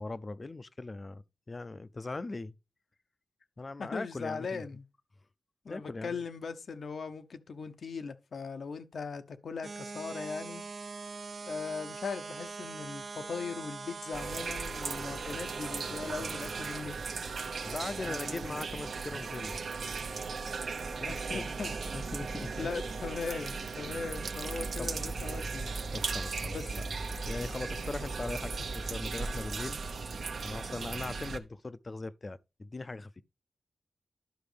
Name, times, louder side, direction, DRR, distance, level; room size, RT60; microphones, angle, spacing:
voice 1, 0.0-2.5 3.6-4.6 5.7-6.1 17.6-19.6 21.0-21.5 21.9-22.7 24.8-24.9 25.9-26.8 27.2-30.0 30.4-33.2, left 3 dB, 35° left, 0.5 m, -40 dB
voice 2, 3.8-4.8 5.6-10.6 11.5-17.0 18.0-18.6 21.0-21.7 22.6-25.7 26.5-26.6, left 5 dB, 75° left, 0.8 m, -39 dB
sound 1, 9.6-16.8, right 4 dB, 50° right, 0.4 m, -43 dB
sound 2, 14.1-31.4, right 4 dB, 75° right, 0.8 m, -37 dB
11.5 x 5.0 x 3.4 m
wide cardioid pair, 135°, 0 cm